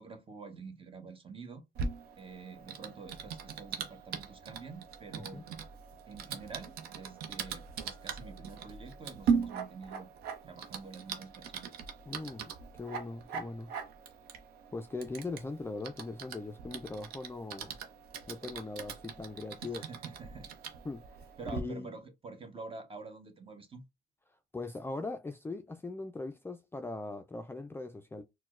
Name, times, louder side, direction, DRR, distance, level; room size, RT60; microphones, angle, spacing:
voice 1, 0.0-1.6 2.2-5.4 6.1-10.1 10.4-11.7 19.7-20.5 21.4-23.8, right 4 dB, 35° right, 0.8 m, -47 dB
Typing, 1.7-21.6, right 6 dB, 85° right, 0.6 m, -40 dB
voice 2, 12.1-13.7 14.7-17.8 18.3-19.9 20.8-21.0 21.5-21.9 24.5-28.2, left 3 dB, 15° left, 0.3 m, -40 dB
4.3 x 2.1 x 2.4 m
supercardioid pair, 70°, 16 cm